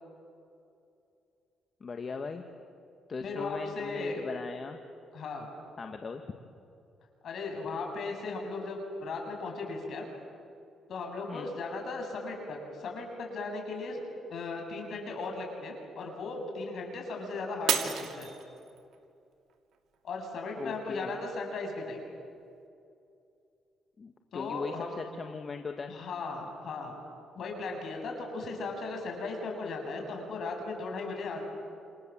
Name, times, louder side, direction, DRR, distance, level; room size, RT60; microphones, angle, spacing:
voice 1, 1.8-2.4 3.1-4.8 5.8-6.2 11.3-11.5 20.6-21.1 24.0-25.9, left 4 dB, 40° left, 5 dB, 1.6 m, -38 dB
voice 2, 3.2-4.2 5.1-5.5 7.2-10.0 10.9-14.0 14.3-18.3 20.0-22.0 24.3-25.0 25.9-26.9 27.4-31.4, left 3 dB, 60° left, 2 dB, 7.3 m, -37 dB
Shatter, 17.7-19.0 19.5-19.9 20.5-20.6, right 8 dB, 70° right, 2.6 m, -31 dB
28.5 x 28.0 x 7.5 m, 2.6 s
cardioid pair, 90°, 0 cm